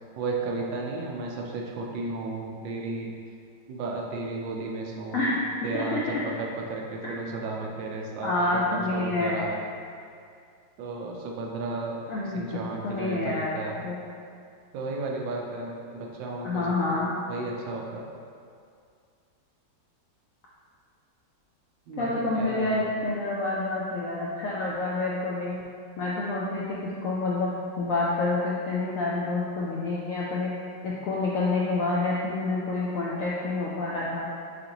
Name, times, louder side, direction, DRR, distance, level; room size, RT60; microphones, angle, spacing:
voice 1, 0.2-3.1 3.7-5.3 5.6-9.6 10.8-12.0 12.3-13.8 14.7-16.6 16.9-18.1 21.9-22.8, right 3 dB, 90° right, -1 dB, 1.4 m, -34 dB
voice 2, 5.7-6.2 8.2-9.4 12.1-14.0 16.4-17.1 22.0-25.6 26.0-30.5 30.8-34.3, left 2 dB, 75° left, -6 dB, 0.7 m, -28 dB
6.5 x 2.5 x 2.9 m, 2.3 s
omnidirectional pair, 2.0 m